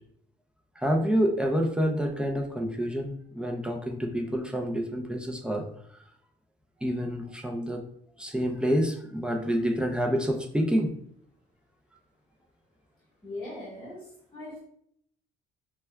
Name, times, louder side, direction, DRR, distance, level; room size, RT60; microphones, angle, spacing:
voice 1, 0.8-5.7 6.8-7.8 8.2-10.9, equal, 5° right, 2 dB, 0.5 m, -28 dB
voice 2, 13.2-14.6, left 2 dB, 25° left, -6 dB, 1.3 m, -40 dB
5.4 x 2.3 x 2.2 m, 0.69 s
cardioid pair, 110°, 17 cm